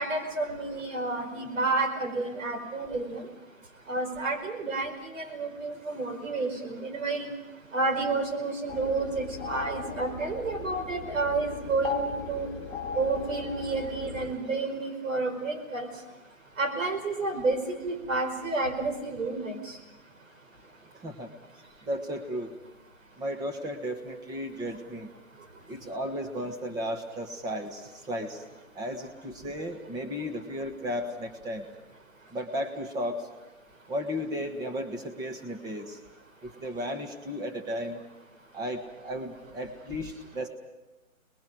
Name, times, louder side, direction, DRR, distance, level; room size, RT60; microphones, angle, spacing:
voice 1, 0.0-3.2 3.9-7.3 7.7-12.5 12.9-15.9 16.6-19.8, right 3 dB, 65° right, 5 dB, 5.2 m, -30 dB
sound 1, 8.7-14.3, left 4 dB, 5° left, 2.0 m, -37 dB
voice 2, 21.8-22.5 23.2-25.1 25.7-28.4 28.7-31.7 32.3-33.3 33.9-36.0 36.4-38.0 38.5-40.5, equal, 10° right, 5 dB, 1.5 m, -34 dB
29.5 x 21.0 x 6.2 m, 1.1 s
hypercardioid pair, 155°, 41 cm